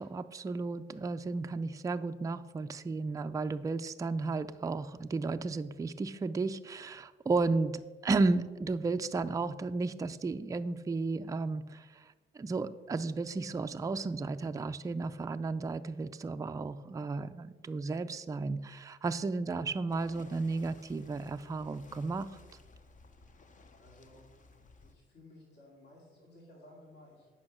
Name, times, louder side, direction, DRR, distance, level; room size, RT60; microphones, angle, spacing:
voice 1, 0.0-7.7 8.0-22.3, right 3 dB, 15° right, 9 dB, 0.4 m, -33 dB
sound 1, 19.9-24.9, left 3 dB, 40° left, 0.8 m, -57 dB
voice 2, 23.8-24.3 24.8-27.3, left 1 dB, 60° left, -2 dB, 2.5 m, -56 dB
8.7 x 5.7 x 6.0 m, 1.3 s
cardioid pair, 90°, 20 cm